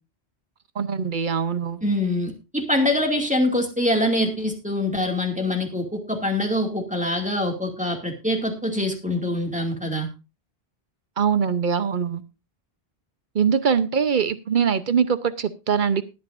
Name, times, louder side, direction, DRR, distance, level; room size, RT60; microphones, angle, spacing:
voice 1, 0.8-1.8 11.2-12.2 13.3-16.0, right 7 dB, 55° right, 13 dB, 0.9 m, -22 dB
voice 2, 1.8-10.1, left 1 dB, 5° right, 2 dB, 2.3 m, -24 dB
20.0 x 8.9 x 2.6 m, 0.27 s
omnidirectional pair, 1.1 m